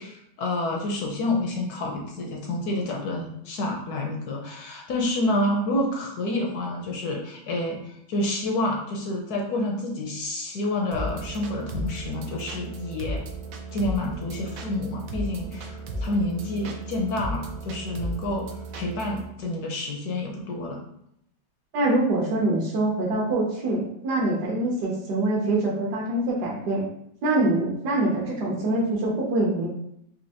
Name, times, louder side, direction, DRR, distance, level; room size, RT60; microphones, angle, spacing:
voice 1, 0.0-13.2 13.7-20.8, left 1 dB, 70° left, 1 dB, 1.0 m, -28 dB
sound 1, 10.9-19.3, right 1 dB, 90° right, 0.7 m, -35 dB
voice 2, 21.7-26.8 27.2-29.7, right 2 dB, 65° right, -4 dB, 1.1 m, -24 dB
4.3 x 2.7 x 2.7 m, 0.75 s
omnidirectional pair, 2.1 m